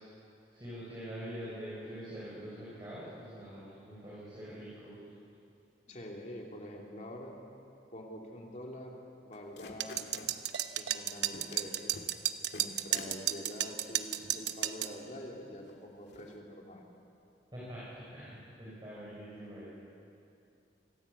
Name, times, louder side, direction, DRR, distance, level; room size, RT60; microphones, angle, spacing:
voice 1, 0.5-5.0 17.5-19.7, equal, 25° right, -9 dB, 6.3 m, -44 dB
voice 2, 5.9-7.4 7.9-10.0 10.7-12.0 12.5-16.9, equal, 45° left, 0 dB, 3.0 m, -46 dB
sound 1, 9.3-10.3 10.9-11.0 11.3-11.7 11.9-12.2 12.5-13.2 13.8-13.9 14.2-14.9 15.7-15.8 16.1-16.4, left 2 dB, 80° left, 2.1 m, -49 dB
sound 2, 9.8-14.9, right 12 dB, 80° right, 0.9 m, -33 dB
25.5 x 16.5 x 8.6 m, 2.7 s
head